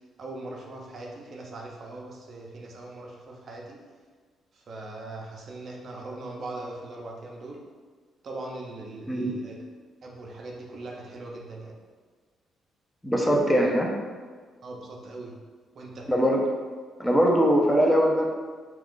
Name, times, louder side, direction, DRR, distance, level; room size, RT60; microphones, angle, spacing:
voice 1, 0.2-3.8 4.5-7.6 8.2-9.6 10.0-11.8 14.6-15.4 15.7-16.1, right 2 dB, 55° right, -1 dB, 0.5 m, -40 dB
voice 2, 13.0-13.9 16.1-16.4 17.0-18.2, equal, 5° left, 0 dB, 0.5 m, -21 dB
2.3 x 2.3 x 3.6 m, 1.5 s
cardioid pair, 90°, 0 cm